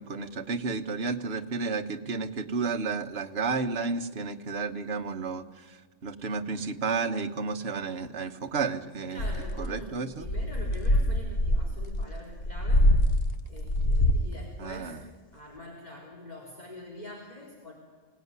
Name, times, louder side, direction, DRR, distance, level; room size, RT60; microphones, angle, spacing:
voice 1, 0.0-9.3 9.6-10.3 14.6-15.0, right 4 dB, 55° right, 6 dB, 1.4 m, -32 dB
voice 2, 9.1-12.9 13.5-15.0 15.3-17.7, left 1 dB, 30° left, -3 dB, 4.1 m, -44 dB
sound 1, 9.2-9.8 10.2-14.3, left 1 dB, 50° left, 1.3 m, -24 dB
24.5 x 18.0 x 9.6 m, 1.5 s
omnidirectional pair, 1.3 m